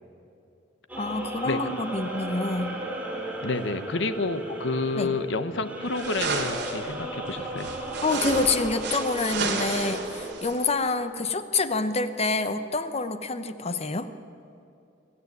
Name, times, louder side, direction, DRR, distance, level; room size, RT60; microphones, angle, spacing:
sound 1, 0.9-10.3, right 1 dB, 10° right, 3.6 m, -35 dB
voice 1, 1.0-2.7 5.0-5.1 8.0-14.1, left 3 dB, 35° left, 10 dB, 1.0 m, -27 dB
voice 2, 3.4-7.7, left 3 dB, 70° left, 11 dB, 1.1 m, -29 dB
sound 2, 5.9-6.9 7.6-10.6, right 4 dB, 60° right, 2.9 m, -32 dB
24.5 x 14.5 x 9.5 m, 2.6 s
head